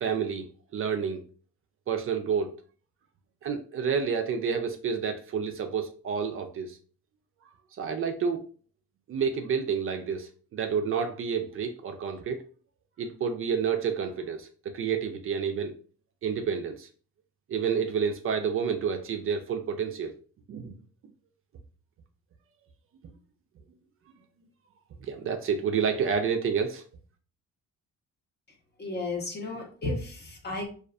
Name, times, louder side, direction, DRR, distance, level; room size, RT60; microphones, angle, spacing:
voice 1, 0.0-1.2 1.9-2.5 3.4-6.8 7.8-8.4 9.1-12.4 13.0-15.7 16.2-16.9 17.5-20.1 20.5-20.7 25.0-26.8, right 6 dB, 45° right, 6 dB, 0.4 m, -29 dB
voice 2, 28.8-30.7, left 2 dB, 35° left, 2 dB, 0.7 m, -33 dB
2.5 x 2.3 x 2.3 m, 0.40 s
cardioid pair, 90°, 30 cm